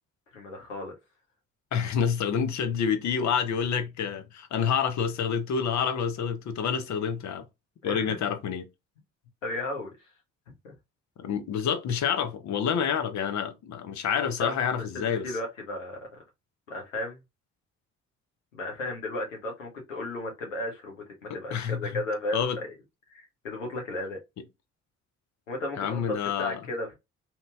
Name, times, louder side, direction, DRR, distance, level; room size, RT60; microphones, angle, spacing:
voice 1, 0.3-0.9 7.8-8.2 9.4-10.1 10.6-10.7 14.2-16.2 16.7-17.2 18.5-22.5 23.1-24.2 25.5-26.9, left 1 dB, 90° left, 0.9 m, -35 dB
voice 2, 1.7-7.5 7.8-8.7 11.2-15.3 21.5-22.0 22.3-22.6 25.8-26.6, left 7 dB, 50° left, 0.7 m, -28 dB
2.9 x 2.8 x 2.2 m
figure-of-eight pair, 45°, 37 cm